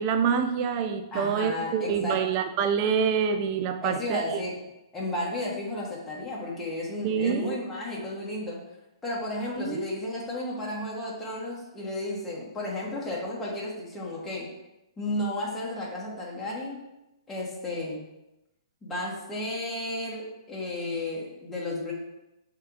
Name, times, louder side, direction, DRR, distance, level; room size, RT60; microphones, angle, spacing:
voice 1, 0.0-4.4 7.0-7.6 9.6-9.9, right 7 dB, 35° right, 8 dB, 0.4 m, -26 dB
voice 2, 1.1-2.2 3.8-4.5 4.9-8.6 9.0-14.5 15.0-16.8 17.3-18.0 18.8-21.9, left 1 dB, 10° left, -6 dB, 1.4 m, -33 dB
7.3 x 2.9 x 2.4 m, 0.93 s
figure-of-eight pair, 120°, 3 cm